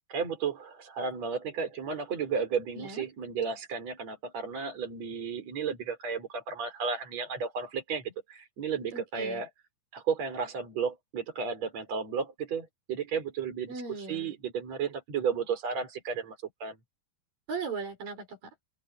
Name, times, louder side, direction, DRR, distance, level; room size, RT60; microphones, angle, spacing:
voice 1, 0.0-9.5 9.9-13.7 14.1-16.8, right 6 dB, 50° right, 5.6 m, -33 dB
voice 2, 2.7-3.1 8.9-9.4 13.7-14.3 17.5-18.5, right 4 dB, 85° right, 7.2 m, -38 dB
open air
omnidirectional pair, 3.9 m